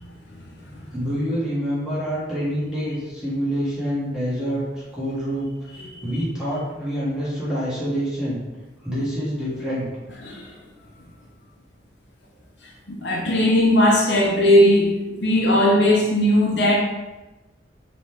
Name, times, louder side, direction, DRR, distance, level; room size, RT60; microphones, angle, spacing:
voice 1, 0.9-8.4 8.8-9.9, equal, 5° right, -10 dB, 1.4 m, -26 dB
voice 2, 12.9-16.7, left 1 dB, 70° left, -3 dB, 0.9 m, -18 dB
4.0 x 3.0 x 3.4 m, 1.1 s
head